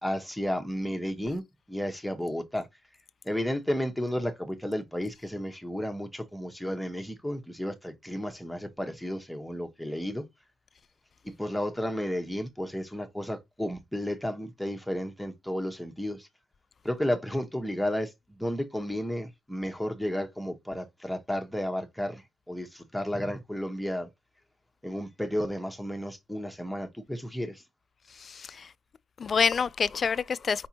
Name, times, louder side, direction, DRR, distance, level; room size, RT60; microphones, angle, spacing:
voice 1, 0.0-2.7 3.2-10.2 11.2-16.3 16.8-24.1 24.8-27.6, equal, 5° left, 1.1 m, -32 dB
voice 2, 28.2-28.7 29.2-30.7, left 6 dB, 45° left, 0.3 m, -27 dB
5.1 x 3.4 x 2.9 m
cardioid pair, 90°, 0 cm